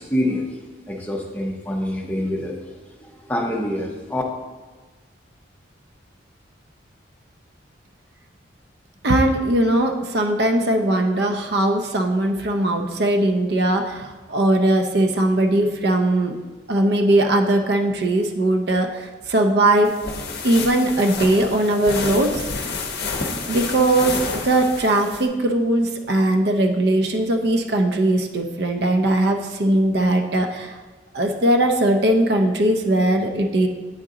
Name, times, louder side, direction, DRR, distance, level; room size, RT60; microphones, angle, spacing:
voice 1, 0.0-4.2, left 1 dB, 10° left, 0 dB, 0.6 m, -26 dB
voice 2, 9.0-16.4 16.7-19.9 20.4-22.8 23.5-30.8 31.1-33.7, right 1 dB, 60° right, 4 dB, 0.5 m, -20 dB
sound 1, 19.8-25.3, left 4 dB, 55° left, 0.7 m, -29 dB
8.6 x 3.9 x 3.7 m, 1.3 s
head